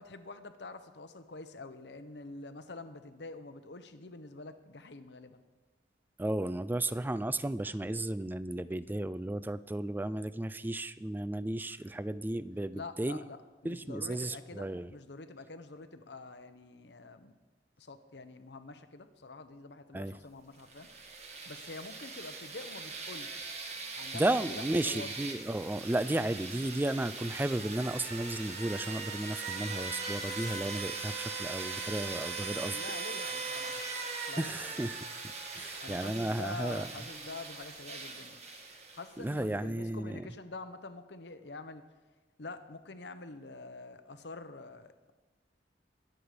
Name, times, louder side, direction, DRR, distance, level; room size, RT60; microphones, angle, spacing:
voice 1, 0.0-5.4 12.7-17.3 17.8-20.9 21.5-23.7 23.9-25.1 32.7-33.8 34.3-34.6 35.8-38.4 38.9-41.8 42.4-45.1, left 3 dB, 70° left, 9 dB, 1.0 m, -46 dB
voice 2, 6.2-13.2 13.6-14.9 19.9-20.2 24.1-32.8 34.4-35.0 35.5-36.9 39.2-40.3, right 1 dB, 10° right, 15 dB, 0.3 m, -34 dB
sound 1, 20.6-39.3, right 4 dB, 40° right, 1.6 m, -40 dB
23.0 x 8.0 x 5.1 m, 1.2 s
head